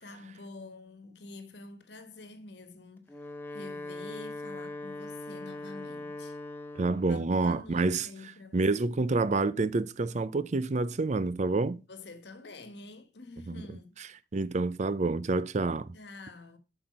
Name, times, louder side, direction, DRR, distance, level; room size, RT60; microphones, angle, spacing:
voice 1, 0.0-6.4 7.1-8.7 11.9-14.0 15.9-16.6, left 3 dB, 65° left, 1.4 m, -47 dB
Wind instrument woodwind instrument, 3.0-7.2, left 2 dB, 10° left, 1.0 m, -41 dB
voice 2, 6.8-8.1 8.5-11.8 14.3-15.9, right 3 dB, 40° right, 0.5 m, -28 dB
7.8 x 6.1 x 5.2 m
head